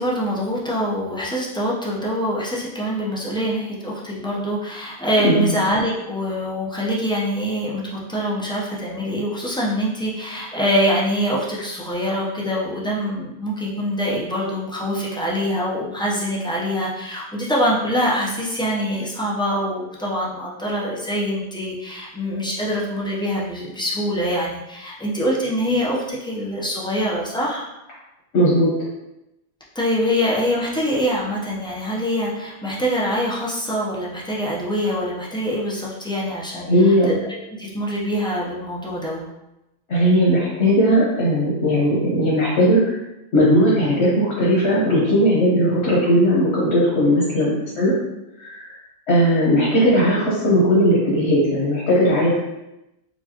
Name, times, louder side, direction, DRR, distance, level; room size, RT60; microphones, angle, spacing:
voice 1, 0.0-27.7 29.7-37.2 37.6-39.3, equal, 5° left, -5 dB, 0.4 m, -24 dB
voice 2, 28.3-28.7 36.6-37.1 39.9-42.8 43.3-47.9 48.4-48.5 49.1-52.4, equal, 85° left, -6 dB, 1.2 m, -17 dB
4.5 x 2.3 x 2.8 m, 0.92 s
omnidirectional pair, 1.1 m